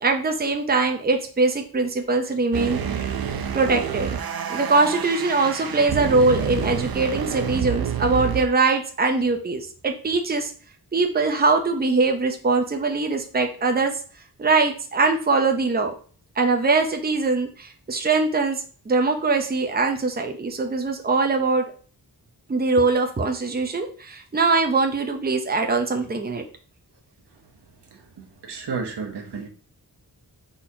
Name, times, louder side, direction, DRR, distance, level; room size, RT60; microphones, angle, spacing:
voice 1, 0.0-3.0 3.5-4.2 4.5-10.5 10.9-14.0 14.4-15.9 16.4-21.7 22.5-26.4, right 3 dB, 25° right, 4 dB, 0.6 m, -22 dB
sound 1, 2.5-8.5, right 8 dB, 65° right, 0.6 m, -28 dB
voice 2, 27.9-29.5, right 5 dB, 90° right, 3 dB, 1.0 m, -33 dB
4.2 x 4.1 x 2.7 m, 0.41 s
wide cardioid pair, 105°, 40 cm